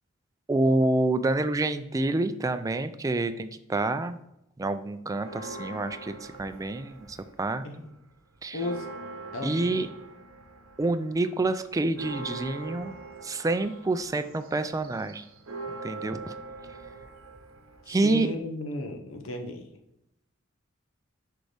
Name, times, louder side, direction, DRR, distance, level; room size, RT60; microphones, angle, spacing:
voice 1, 0.5-4.2 4.6-7.6 8.4-8.6 9.4-9.9 10.8-13.0 13.2-15.2 15.8-16.3 17.9-18.3, right 2 dB, 15° right, 10 dB, 0.3 m, -27 dB
Church bell, 5.2-7.5 7.9-8.0 8.3-18.4, right 3 dB, 90° right, 0.9 m, -43 dB
voice 2, 8.5-8.9 9.3-9.8 17.9-19.7, left 2 dB, 80° left, 5 dB, 0.8 m, -34 dB
6.4 x 4.6 x 3.3 m, 0.84 s
head